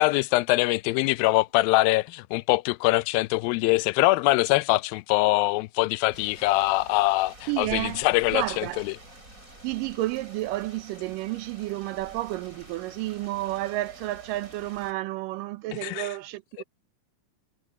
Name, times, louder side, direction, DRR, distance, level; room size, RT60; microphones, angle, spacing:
voice 1, 0.0-8.9 15.8-16.1, left 20 dB, 90° left, 2.3 m, -23 dB
sound 1, 6.1-14.9, right 1 dB, 20° right, 8.1 m, -48 dB
voice 2, 7.5-8.1 8.3-8.9 9.6-16.6, right 17 dB, 75° right, 2.3 m, -31 dB
omnidirectional pair, 4.1 m